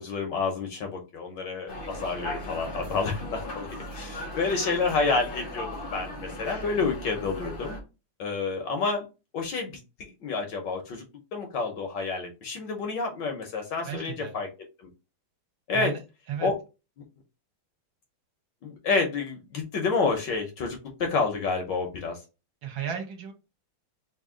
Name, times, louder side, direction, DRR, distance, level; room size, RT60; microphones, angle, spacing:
voice 1, 0.0-7.8 8.2-9.0 9.3-11.0 11.3-14.5 14.8-14.9 15.7-15.9 16.4-16.6 18.6-22.2, left 4 dB, 65° left, 3 dB, 1.3 m, -29 dB
sound 1, 1.7-7.8, left 1 dB, 85° left, 0.4 m, -37 dB
voice 2, 13.8-14.3 15.7-16.0 16.3-16.5 22.6-23.3, right 8 dB, 65° right, 4 dB, 1.5 m, -34 dB
3.6 x 2.6 x 3.7 m, 0.29 s
omnidirectional pair, 2.4 m